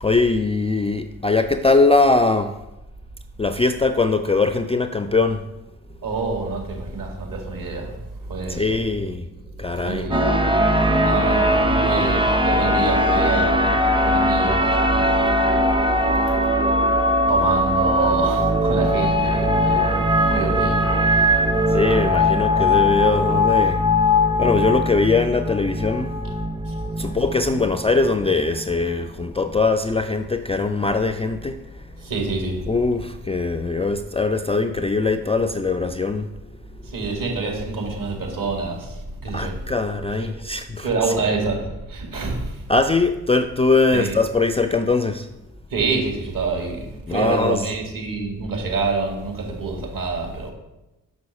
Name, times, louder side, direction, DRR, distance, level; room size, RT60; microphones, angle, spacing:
voice 1, 0.0-2.5 3.4-5.4 8.4-9.2 9.6-10.1 10.7-11.1 21.7-23.8 24.4-26.2 27.0-31.6 32.7-36.3 39.3-40.9 42.7-45.3 47.1-47.6, left 3 dB, 15° left, 9 dB, 0.4 m, -21 dB
voice 2, 6.0-7.9 8.3-8.8 9.8-10.3 11.0-15.2 16.0-16.3 17.3-21.0 26.6-26.7 32.0-32.7 36.9-39.6 40.2-40.3 40.8-42.6 43.9-44.2 45.7-50.5, right 3 dB, 50° right, 1 dB, 2.4 m, -27 dB
sound 1, 10.1-29.5, left 1 dB, 10° right, 0.8 m, -20 dB
6.1 x 6.1 x 4.2 m, 1.0 s
hypercardioid pair, 40°, 42 cm